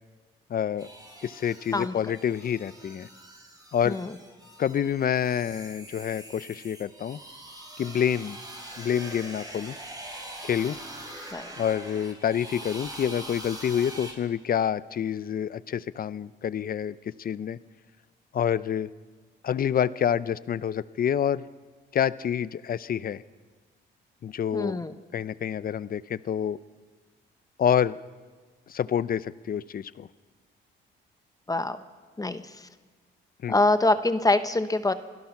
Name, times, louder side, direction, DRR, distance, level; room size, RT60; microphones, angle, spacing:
voice 1, 0.5-0.9 1.2-3.1 3.7-4.0 4.6-7.2 7.8-8.4 8.8-9.8 10.4-10.8 11.6-17.6 18.3-18.9 19.4-21.5 21.9-23.2 24.2-24.8 25.1-26.6 27.6-28.0 28.7-30.1 33.4-33.6, left 9 dB, 45° left, 17 dB, 0.7 m, -27 dB
sound 1, 0.8-14.1, right 1 dB, 20° right, 4.8 m, -43 dB
voice 2, 24.5-24.9 31.5-31.8 32.2-32.7 33.5-34.9, left 2 dB, 20° left, 10 dB, 1.1 m, -25 dB
27.5 x 18.0 x 6.0 m, 1.4 s
cardioid pair, 90°, 20 cm